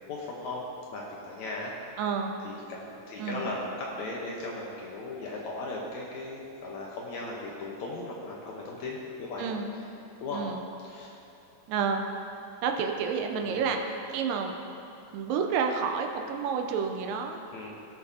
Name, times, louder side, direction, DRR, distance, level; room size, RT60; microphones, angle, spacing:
voice 1, 0.1-0.6 0.9-1.7 2.4-9.5 10.2-10.4 10.8-11.2 13.4-13.6 17.5-17.7, left 2 dB, 70° left, -3 dB, 2.0 m, -37 dB
voice 2, 2.0-2.3 3.2-3.5 9.4-9.7 10.3-10.6 11.7-12.1 12.6-14.6 15.1-17.4, right 6 dB, 80° right, 4 dB, 2.2 m, -30 dB
17.5 x 6.5 x 2.7 m, 2.8 s
omnidirectional pair, 4.0 m